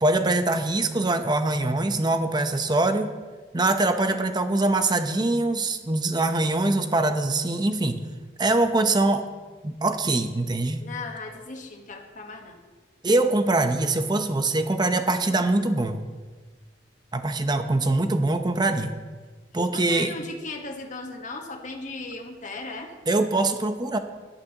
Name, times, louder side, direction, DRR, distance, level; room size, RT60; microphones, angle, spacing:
voice 1, 0.0-3.1 3.5-8.0 8.4-9.3 9.6-10.8 13.0-16.0 17.1-19.0 19.5-20.1 23.1-24.0, right 2 dB, 25° right, 7 dB, 0.8 m, -23 dB
voice 2, 10.8-12.6 19.7-22.9, left 3 dB, 45° left, 2 dB, 1.3 m, -37 dB
16.0 x 11.5 x 2.9 m, 1.4 s
head